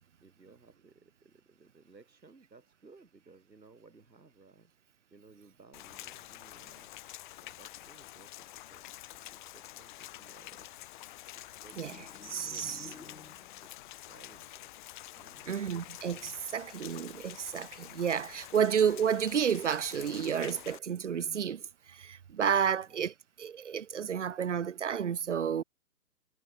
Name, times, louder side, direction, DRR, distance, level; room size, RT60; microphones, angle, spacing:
voice 1, 0.2-4.7 5.1-6.9 7.4-10.8 11.3-13.7 14.1-14.8 15.1-15.6 22.5-23.1, right 3 dB, 85° right, 5.3 m, -59 dB
Rain, 5.7-20.8, left 16 dB, 30° left, 3.1 m, -48 dB
sound 1, 11.7-13.8, left 5 dB, 90° left, 1.8 m, -52 dB
voice 2, 12.3-12.8 15.5-21.6 21.9-23.1 23.4-25.6, right 8 dB, 50° right, 0.5 m, -31 dB
figure-of-eight pair, 140°, 50 cm